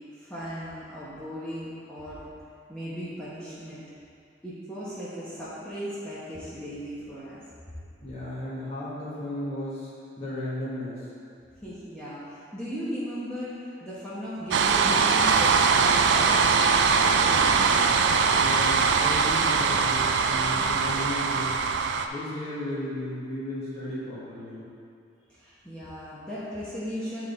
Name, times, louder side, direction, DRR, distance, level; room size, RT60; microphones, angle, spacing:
voice 1, 0.2-2.2 2.7-3.8 4.4-7.4 11.6-17.6 25.3-27.3, equal, 5° left, -11 dB, 0.9 m, -37 dB
voice 2, 8.0-9.9 10.2-11.0 18.4-21.6 22.1-24.6, left 1 dB, 35° left, -10 dB, 1.5 m, -35 dB
sound 1, 14.5-22.1, right 5 dB, 70° right, 0.3 m, -22 dB
9.0 x 3.7 x 3.9 m, 2.4 s
head